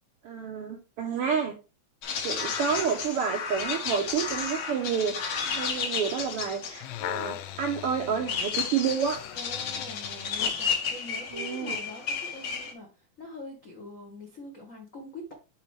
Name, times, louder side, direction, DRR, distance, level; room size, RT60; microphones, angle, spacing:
voice 1, 0.2-1.6 2.2-9.2 11.3-11.8, right 7 dB, 80° right, 2 dB, 1.3 m, -29 dB
sound 1, 2.0-12.7, left 6 dB, 60° left, 2.0 m, -33 dB
sound 2, 6.5-10.6 11.3-11.4, left 13 dB, 90° left, 1.5 m, -39 dB
voice 2, 9.3-15.3, left 1 dB, 75° left, 0 dB, 0.7 m, -44 dB
6.7 x 4.8 x 3.2 m, 0.32 s
omnidirectional pair, 3.5 m